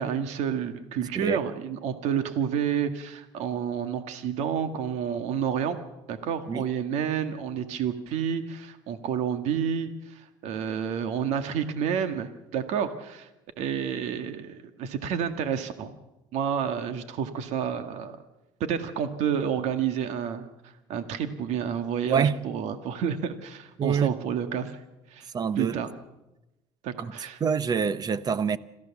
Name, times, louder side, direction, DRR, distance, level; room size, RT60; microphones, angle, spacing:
voice 1, 0.0-5.8 6.1-13.3 13.6-15.9 16.3-18.2 18.6-20.5 20.9-24.8 25.1-25.3 25.6-25.9 26.8-27.4, right 8 dB, 65° right, 1.8 m, -29 dB
voice 2, 23.8-24.1 25.3-25.8 27.0-27.1 27.4-28.6, right 6 dB, 30° right, 1.0 m, -26 dB
26.5 x 15.0 x 7.2 m
supercardioid pair, 105°, 12 cm